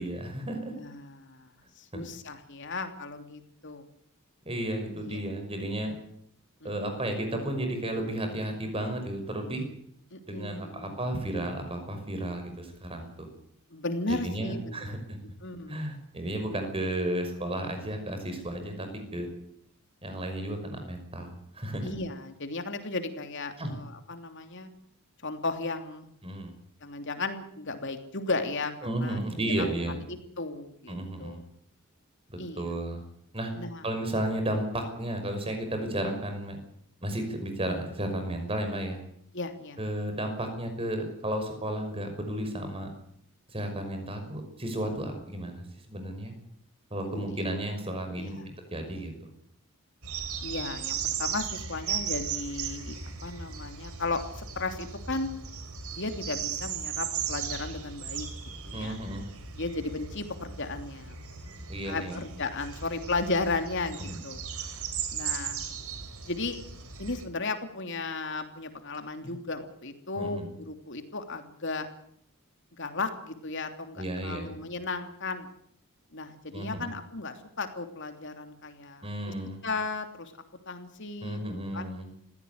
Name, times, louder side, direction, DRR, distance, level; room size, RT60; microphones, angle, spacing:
voice 1, 0.0-0.7 1.9-2.0 4.5-5.9 6.6-9.6 10.2-13.3 14.1-15.4 15.7-19.3 20.0-21.9 23.6-23.7 26.2-26.5 28.8-30.0 30.9-31.4 32.3-33.0 33.3-33.5 33.8-36.6 37.0-39.0 39.8-42.9 43.5-46.3 46.9-49.3 58.7-59.2 61.7-62.2 64.1-64.2 70.2-70.5 74.0-74.5 76.5-76.9 79.0-79.6 81.2-82.1, right 1 dB, 25° right, 6 dB, 5.8 m, -33 dB
voice 2, 0.7-1.5 1.8-3.8 4.9-5.2 6.6-6.9 10.1-11.0 13.7-15.0 15.4-15.8 21.8-24.7 25.2-26.1 26.8-28.7 29.0-29.2 29.6-29.7 30.1-31.4 32.4-32.6 33.5-33.8 36.0-36.2 39.3-39.8 47.1-47.4 48.2-48.5 50.4-55.3 55.9-58.3 58.6-59.0 59.6-61.2 61.8-64.4 65.1-65.6 66.2-66.6 67.0-71.9 72.8-75.5 76.1-79.0 79.6-80.3 80.7-81.9, left 3 dB, 55° left, 7 dB, 3.1 m, -35 dB
sound 1, 50.0-67.2, right 7 dB, 85° right, 3.7 m, -37 dB
21.5 x 17.0 x 9.6 m, 0.70 s
head